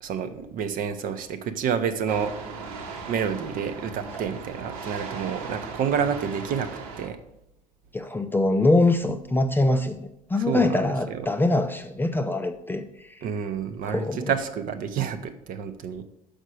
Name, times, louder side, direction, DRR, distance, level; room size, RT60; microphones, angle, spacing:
voice 1, 0.0-2.3 3.1-6.7 7.0-7.2 10.4-11.3 13.2-16.0, right 7 dB, 45° right, 0.8 m, -29 dB
sound 1, 2.1-7.1, right 4 dB, 65° right, 1.1 m, -37 dB
voice 2, 7.9-13.1 13.9-14.3, left 2 dB, 10° left, 0.5 m, -23 dB
6.4 x 5.0 x 6.2 m
figure-of-eight pair, 65°, 20 cm